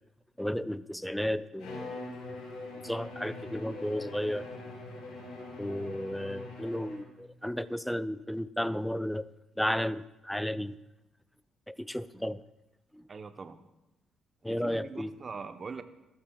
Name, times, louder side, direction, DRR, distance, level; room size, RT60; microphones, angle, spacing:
voice 1, 0.4-2.0 2.8-4.5 5.6-9.3 9.6-10.8 11.7-12.4 12.9-13.1 14.4-15.1, equal, 5° left, 16 dB, 0.4 m, -33 dB
Bowed string instrument, 1.6-7.2, left 2 dB, 70° left, 4.0 m, -43 dB
voice 2, 13.1-13.6 14.5-15.8, right 5 dB, 40° right, 9 dB, 0.8 m, -42 dB
12.5 x 12.5 x 2.3 m, 0.94 s
hypercardioid pair, 50°, 0 cm